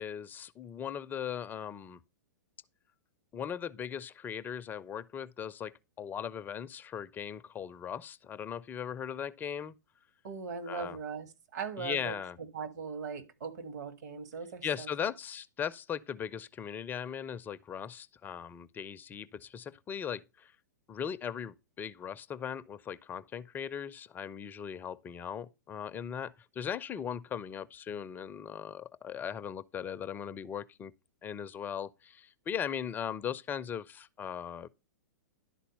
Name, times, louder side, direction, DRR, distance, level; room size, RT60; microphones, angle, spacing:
voice 1, 0.0-2.0 3.3-9.7 10.7-11.0 11.8-12.4 14.6-20.5 20.9-30.9 31.2-34.7, left 8 dB, 20° left, 0.4 m, -38 dB
voice 2, 10.2-15.1, right 5 dB, 65° right, 1.6 m, -40 dB
11.5 x 4.1 x 5.3 m
figure-of-eight pair, 110°, 10 cm